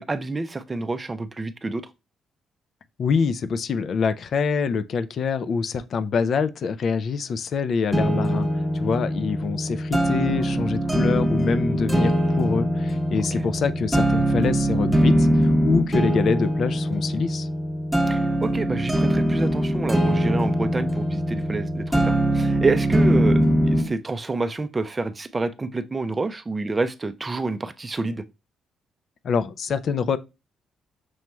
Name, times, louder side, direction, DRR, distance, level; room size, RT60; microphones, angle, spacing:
voice 1, 0.0-1.9 10.3-10.7 13.3-13.5 18.1-28.2, right 3 dB, 25° right, 0.4 m, -28 dB
voice 2, 3.0-17.5 29.2-30.2, left 5 dB, 55° left, 0.3 m, -25 dB
sound 1, 7.9-23.9, equal, ahead, 0.9 m, -22 dB
6.1 x 2.9 x 2.2 m
cardioid pair, 90°, 0 cm